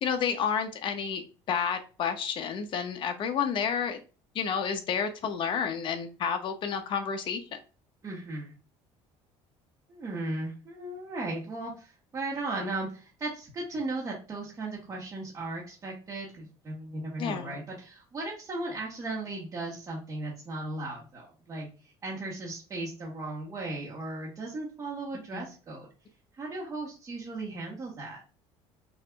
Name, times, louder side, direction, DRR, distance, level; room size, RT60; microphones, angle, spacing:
voice 1, 0.0-4.0 4.3-7.6 17.2-17.6 25.3-25.5, left 7 dB, 45° left, 7 dB, 0.7 m, -30 dB
voice 2, 8.0-8.5 9.9-21.7 22.0-25.9 26.4-28.2, right 2 dB, 25° right, -5 dB, 1.1 m, -36 dB
5.8 x 2.6 x 2.3 m, 0.36 s
cardioid pair, 140°, 12 cm